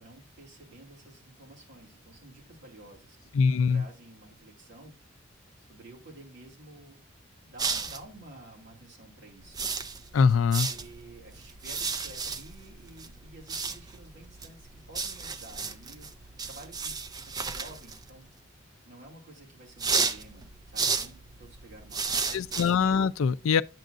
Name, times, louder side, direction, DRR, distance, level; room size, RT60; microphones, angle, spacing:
voice 1, 0.0-3.3 3.7-5.0 5.6-7.0 7.4-9.8 10.7-16.1 16.4-18.4 18.8-22.7, right 1 dB, 55° right, 2.4 m, -51 dB
voice 2, 3.3-3.8 10.1-10.7 22.3-23.6, left 6 dB, 75° left, 0.4 m, -23 dB
sound 1, 7.6-8.2 9.4-18.3 19.7-23.0, right 5 dB, 20° right, 0.4 m, -34 dB
9.1 x 7.5 x 2.5 m
head